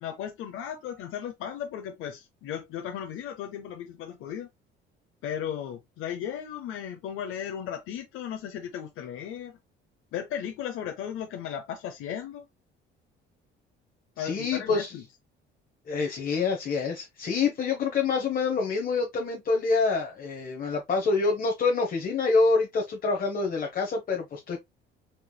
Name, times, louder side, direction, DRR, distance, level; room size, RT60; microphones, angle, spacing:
voice 1, 0.0-4.5 5.2-9.6 10.1-12.5 14.2-15.0, left 9 dB, 75° left, 0.8 m, -36 dB
voice 2, 14.2-15.0 15.9-24.6, left 4 dB, 45° left, 1.0 m, -26 dB
4.5 x 3.1 x 2.2 m
cardioid pair, 100°, 21 cm